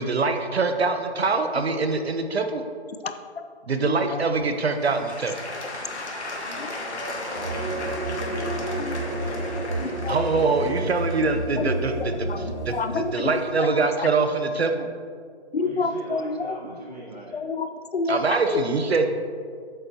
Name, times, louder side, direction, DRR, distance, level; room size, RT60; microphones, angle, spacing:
voice 1, 0.0-2.6 3.7-5.3 10.1-12.3 12.7-14.9 18.1-19.1, right 4 dB, 70° right, 7 dB, 0.9 m, -24 dB
voice 2, 3.0-3.4 3.8-4.2 6.6-6.7 8.8-8.9 10.0-10.2 11.6-11.7 12.3-12.4 12.7-13.3 13.6-14.1 15.5-16.8 17.3-18.8, left 4 dB, 65° left, 9 dB, 0.6 m, -29 dB
voice 3, 4.0-4.3 6.4-10.8 15.6-17.4, right 1 dB, 35° right, -8 dB, 1.8 m, -41 dB
Applause / Crowd, 4.3-13.2 13.8-13.9, left 2 dB, 90° left, 1.7 m, -36 dB
sound 1, 7.3-12.6, right 1 dB, 20° right, 1.1 m, -30 dB
8.5 x 6.9 x 2.9 m, 2.1 s
hypercardioid pair, 180°, 33 cm